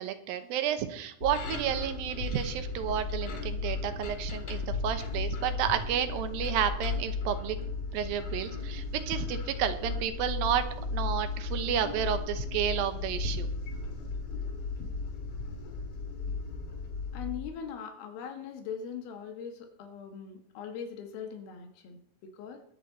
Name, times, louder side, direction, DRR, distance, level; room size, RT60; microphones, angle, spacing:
voice 1, 0.0-13.5, right 9 dB, 80° right, 9 dB, 2.7 m, -31 dB
sound 1, 1.2-17.5, left 3 dB, 45° left, 2.5 m, -35 dB
voice 2, 17.1-22.6, left 7 dB, 90° left, 5 dB, 3.2 m, -41 dB
22.0 x 8.2 x 4.1 m, 0.68 s
omnidirectional pair, 4.2 m